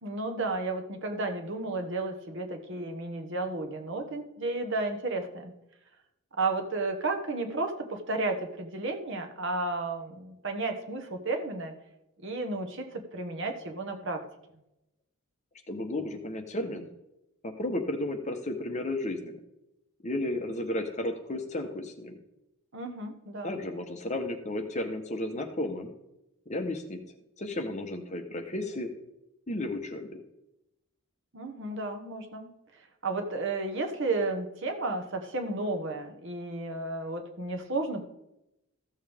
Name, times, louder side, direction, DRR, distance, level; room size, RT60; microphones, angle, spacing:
voice 1, 0.0-5.5 6.4-11.7 12.2-14.2 22.7-23.5 31.3-32.5 33.0-38.0, right 2 dB, 55° right, 5 dB, 1.2 m, -32 dB
voice 2, 15.7-16.9 17.4-19.4 20.0-22.2 23.4-25.9 26.5-27.0 27.4-28.9 29.5-30.2, left 1 dB, 30° left, 6 dB, 1.0 m, -33 dB
14.5 x 7.1 x 3.5 m, 0.87 s
head